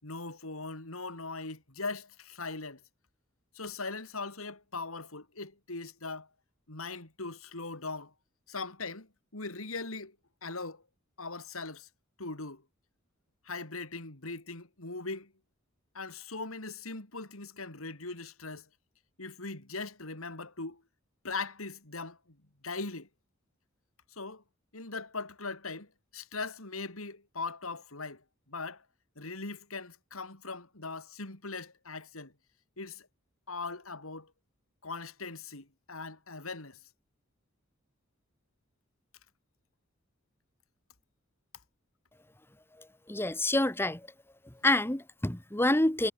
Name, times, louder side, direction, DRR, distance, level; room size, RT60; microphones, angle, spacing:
voice 1, 0.0-2.8 3.5-6.3 6.7-8.1 8.5-10.2 10.4-10.8 11.2-11.9 12.2-12.6 13.4-15.3 15.9-18.7 19.2-20.8 21.2-22.4 22.6-23.1 24.1-24.4 24.7-28.8 29.2-32.3 32.8-33.1 33.5-34.3 34.8-36.8, left 3 dB, 90° left, 4.1 m, -40 dB
voice 2, 43.1-44.0 44.6-46.1, left 1 dB, 10° left, 1.2 m, -27 dB
head